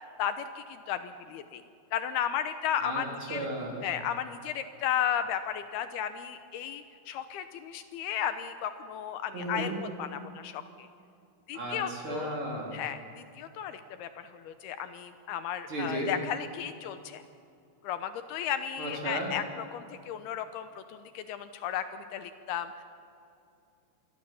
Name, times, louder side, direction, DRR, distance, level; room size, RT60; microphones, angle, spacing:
voice 1, 0.2-1.6 1.9-3.5 3.8-9.7 10.0-10.9 11.5-12.4 12.7-17.2 17.8-22.8, left 9 dB, 80° left, 10 dB, 2.7 m, -34 dB
voice 2, 3.3-3.8 9.3-9.8 11.5-12.7 15.7-16.1 18.8-19.3, right 1 dB, 30° right, -2 dB, 4.5 m, -34 dB
27.0 x 21.0 x 7.0 m, 2.5 s
omnidirectional pair, 4.8 m